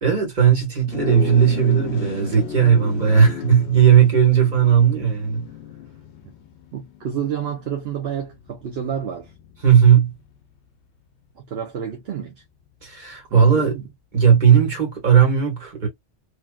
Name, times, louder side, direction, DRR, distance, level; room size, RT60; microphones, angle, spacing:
voice 1, 0.0-5.4 9.6-10.1 12.8-13.8 14.1-15.9, right 8 dB, 40° right, 1.6 m, -16 dB
sound 1, 0.8-10.4, left 10 dB, 75° left, 0.8 m, -35 dB
voice 2, 6.7-9.3 11.4-12.4 13.3-13.9, right 8 dB, 65° right, 0.9 m, -29 dB
3.2 x 2.7 x 2.2 m
omnidirectional pair, 1.2 m